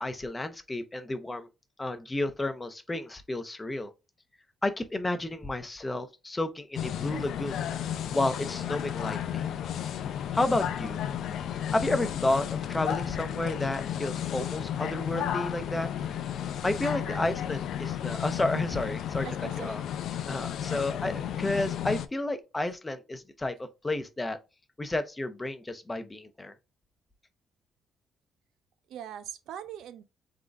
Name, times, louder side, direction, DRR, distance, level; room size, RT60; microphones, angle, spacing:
voice 1, 0.0-1.5 1.8-3.9 4.6-7.6 8.1-9.4 10.3-11.0 11.7-15.9 16.6-19.3 19.6-19.8 20.3-24.4 24.8-26.5, left 2 dB, 20° left, 0.7 m, -31 dB
sound 1, 6.8-22.1, left 10 dB, 75° left, 0.5 m, -33 dB
voice 2, 19.2-19.8 20.7-20.8 28.9-30.0, right 10 dB, 80° right, 0.6 m, -42 dB
3.9 x 3.7 x 3.4 m
cardioid pair, 90°, 0 cm